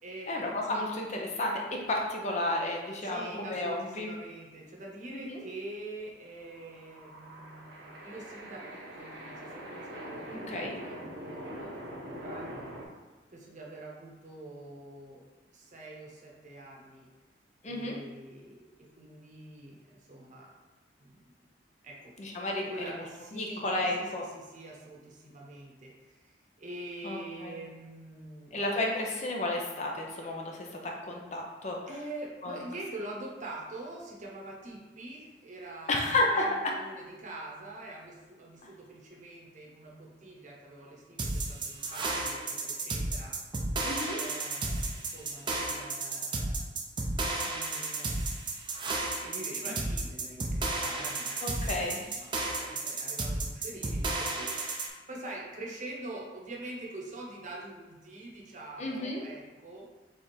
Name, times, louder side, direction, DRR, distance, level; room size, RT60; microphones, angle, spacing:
voice 1, 0.3-4.1 5.1-5.4 10.3-10.7 17.6-18.0 22.2-23.0 23.3-24.3 27.0-27.6 28.5-31.8 32.4-32.6 35.9-36.4 43.8-44.2 51.4-52.0 58.8-59.2, left 2 dB, 40° left, 0 dB, 0.7 m, -32 dB
voice 2, 3.0-12.7 13.3-15.2 15.5-17.1 17.6-20.5 21.0-21.3 21.8-22.1 22.7-28.6 31.9-43.3 44.1-46.7 47.4-48.4 49.2-51.9 52.1-59.9, right 2 dB, 45° right, -2 dB, 0.9 m, -45 dB
sound 1, 6.4-12.9, right 1 dB, 75° right, 0.9 m, -43 dB
sound 2, 41.2-54.9, right 2 dB, 25° right, 0.5 m, -33 dB
3.5 x 3.5 x 4.3 m, 1.2 s
head